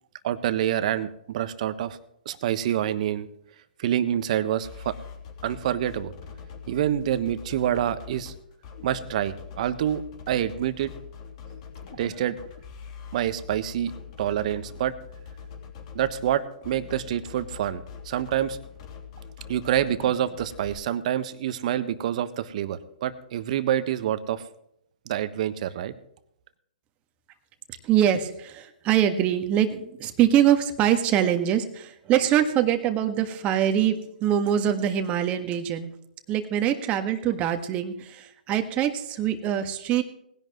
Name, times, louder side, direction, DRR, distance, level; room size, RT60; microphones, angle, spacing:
voice 1, 0.2-2.0 2.2-3.3 3.8-5.0 5.4-6.1 6.7-8.3 8.8-10.9 12.0-12.4 13.1-13.9 14.2-14.9 15.9-18.6 19.5-24.4 25.1-25.9, right 11 dB, 50° right, 12 dB, 1.2 m, -27 dB
sound 1, 4.6-20.8, left 6 dB, 45° left, 3.1 m, -43 dB
voice 2, 27.8-35.9 36.3-40.0, right 10 dB, 25° right, 7 dB, 1.6 m, -24 dB
19.5 x 11.0 x 3.1 m, 0.74 s
hypercardioid pair, 135°, 5 cm